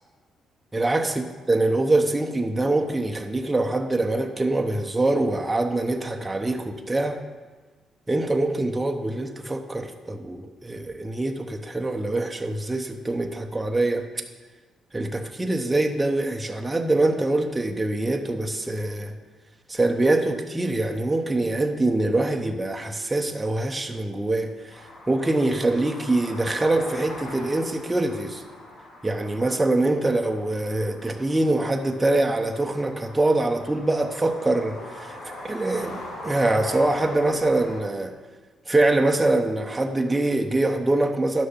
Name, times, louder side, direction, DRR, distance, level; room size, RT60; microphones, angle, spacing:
voice 1, 0.7-7.2 8.1-14.1 14.9-19.1 19.7-28.4 29.0-35.2 35.4-38.2 38.7-41.5, right 2 dB, 15° right, 3 dB, 0.8 m, -24 dB
sound 1, 24.7-37.8, left 1 dB, 85° left, 2.5 m, -41 dB
11.0 x 6.5 x 5.7 m, 1.3 s
cardioid pair, 90°, 0 cm